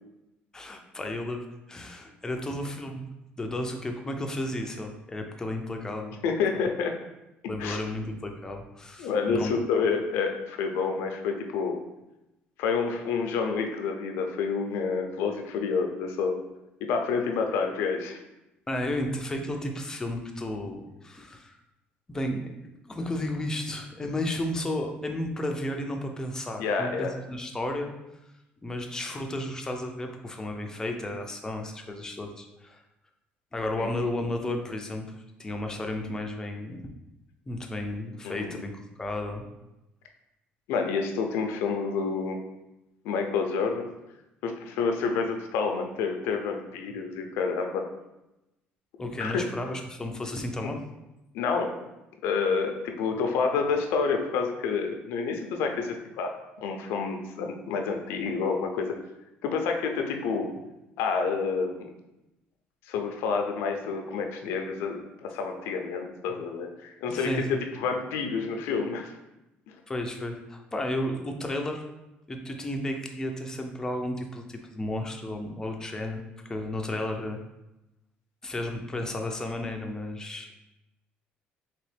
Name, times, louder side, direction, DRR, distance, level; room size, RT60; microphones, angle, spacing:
voice 1, 0.5-1.4 1.7-3.0 3.4-6.2 7.5-9.6 18.7-21.6 22.1-22.4 22.9-27.9 28.6-32.8 33.5-35.1 35.4-36.8 37.5-39.4 49.0-50.8 67.1-67.5 69.9-71.8 72.3-77.4 78.4-80.5, left 1 dB, 15° left, 3 dB, 0.5 m, -33 dB
voice 2, 6.2-6.9 7.6-7.8 9.0-11.8 12.6-16.4 16.8-18.2 26.6-27.2 33.8-33.9 38.2-38.6 40.7-42.4 43.0-43.9 44.4-47.8 49.0-49.5 50.6-50.7 51.3-51.8 52.2-58.9 59.4-60.5 61.0-61.9 62.8-69.1, left 5 dB, 85° left, 4 dB, 0.5 m, -28 dB
4.1 x 2.9 x 3.3 m, 0.94 s
cardioid pair, 120°, 4 cm